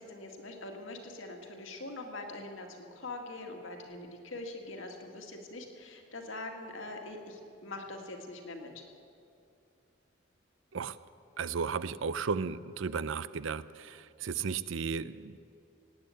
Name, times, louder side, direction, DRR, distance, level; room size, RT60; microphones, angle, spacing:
voice 1, 0.0-8.9, left 2 dB, 70° left, 3 dB, 2.0 m, -43 dB
voice 2, 11.4-15.4, right 5 dB, 70° right, 16 dB, 0.5 m, -34 dB
18.0 x 9.0 x 8.4 m, 2.5 s
head